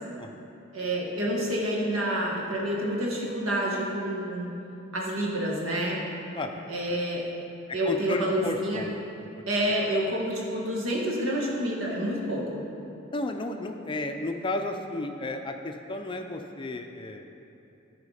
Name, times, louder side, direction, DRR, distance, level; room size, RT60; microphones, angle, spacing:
voice 1, 0.7-4.5 4.9-6.0 6.7-7.2 7.7-8.8 9.5-12.6, right 1 dB, 85° right, -3 dB, 1.7 m, -28 dB
voice 2, 7.9-9.4 13.1-17.2, left 2 dB, 25° left, 5 dB, 0.4 m, -33 dB
14.0 x 4.9 x 4.9 m, 2.8 s
head